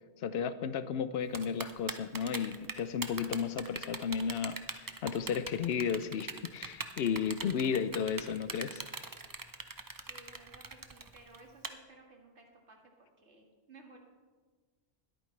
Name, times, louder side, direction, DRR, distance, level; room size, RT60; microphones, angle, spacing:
voice 1, 0.2-8.8, left 7 dB, 70° left, 13 dB, 0.8 m, -33 dB
Typing, 1.3-11.7, right 4 dB, 30° right, 0.4 m, -40 dB
voice 2, 10.1-12.8 13.2-14.0, right 3 dB, 90° right, 1 dB, 2.1 m, -57 dB
20.5 x 8.8 x 3.3 m, 1.4 s
omnidirectional pair, 1.1 m